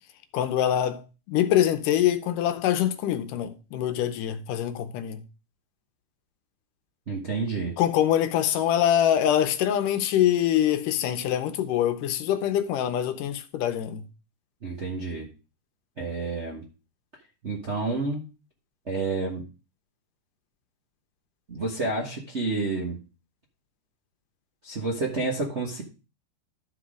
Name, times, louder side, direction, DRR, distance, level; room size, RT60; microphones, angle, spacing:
voice 1, 0.3-5.2 7.8-14.0, left 11 dB, 80° left, 2.3 m, -24 dB
voice 2, 7.1-7.7 14.6-15.3 16.0-16.6 17.4-18.2 18.9-19.4 21.5-23.0 24.6-25.8, right 3 dB, 75° right, 0.6 m, -29 dB
12.0 x 4.3 x 4.9 m
omnidirectional pair, 3.8 m